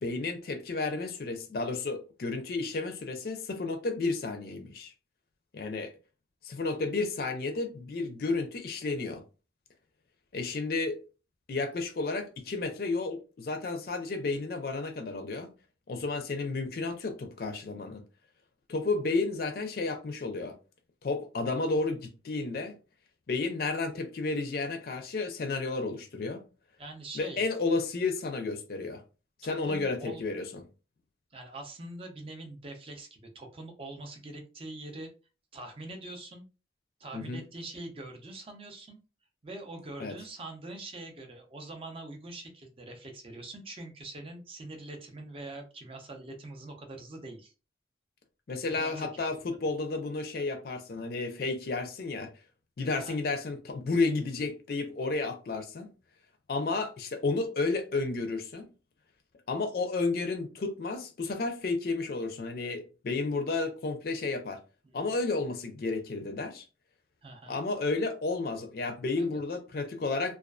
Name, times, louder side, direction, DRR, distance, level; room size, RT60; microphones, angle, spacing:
voice 1, 0.0-4.9 5.5-5.9 6.4-9.2 10.3-11.0 11.5-15.5 15.9-18.0 18.7-20.6 21.0-22.7 23.3-26.4 27.1-29.0 29.4-30.6 37.1-37.4 40.0-40.1 48.5-52.3 52.8-55.9 56.5-58.7 59.5-64.6 64.9-66.6 67.5-70.4, left 3 dB, 55° left, 0.4 m, -32 dB
voice 2, 26.8-27.4 29.4-30.2 31.3-35.1 35.5-36.5 37.0-39.0 39.4-47.5 48.7-49.1 52.9-53.2 64.8-65.1 67.2-67.6 69.2-69.4, right 2 dB, 30° right, 0.5 m, -44 dB
2.4 x 2.3 x 2.2 m
head